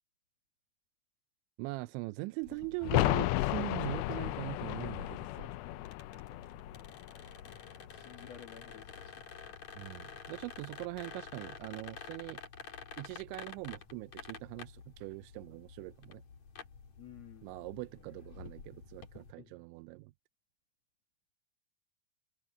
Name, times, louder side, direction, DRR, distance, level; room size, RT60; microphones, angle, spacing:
voice 1, 1.6-5.5 9.8-12.4 13.0-16.2 17.4-20.1, right 23 dB, 90° right, 2.9 m, -42 dB
sound 1, 2.4-19.3, left 6 dB, 45° left, 3.5 m, -50 dB
sound 2, 2.8-8.4 8.7-8.8, left 17 dB, 80° left, 2.8 m, -34 dB
voice 2, 5.3-6.4 7.4-9.2 17.0-17.5 19.4-19.5, left 9 dB, 65° left, 1.6 m, -55 dB
omnidirectional pair, 5.2 m